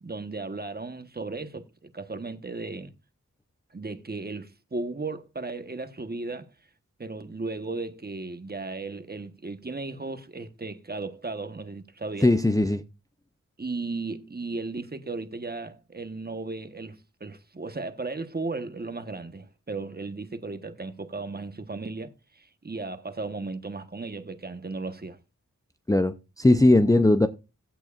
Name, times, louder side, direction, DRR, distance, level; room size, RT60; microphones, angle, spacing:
voice 1, 0.0-2.9 3.7-6.5 7.0-12.3 13.6-25.2, right 3 dB, 30° right, 1.2 m, -35 dB
voice 2, 12.2-12.8 25.9-27.3, left 2 dB, 10° left, 0.6 m, -19 dB
15.5 x 9.2 x 2.5 m
wide cardioid pair, 120°, 31 cm